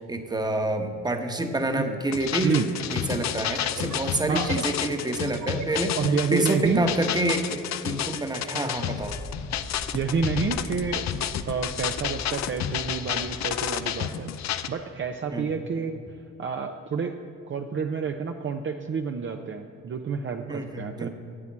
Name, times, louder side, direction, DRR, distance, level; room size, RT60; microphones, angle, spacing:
voice 1, 0.0-2.6 2.9-6.0 6.3-9.2 15.3-15.4 20.5-21.1, right 2 dB, 15° right, 5 dB, 1.2 m, -28 dB
sound 1, 1.9-2.0 3.3-7.3, right 8 dB, 75° right, 0.7 m, -40 dB
sound 2, 2.1-14.7, left 10 dB, 65° left, 0.6 m, -31 dB
voice 2, 6.0-6.9 9.9-11.1 11.5-14.3 14.7-16.0 16.4-17.1 17.5-21.1, right 5 dB, 40° right, 4 dB, 0.7 m, -29 dB
sound 3, 9.0-14.2, left 1 dB, 25° left, 1.0 m, -41 dB
12.5 x 8.2 x 7.3 m, 2.5 s
cardioid pair, 90°, 30 cm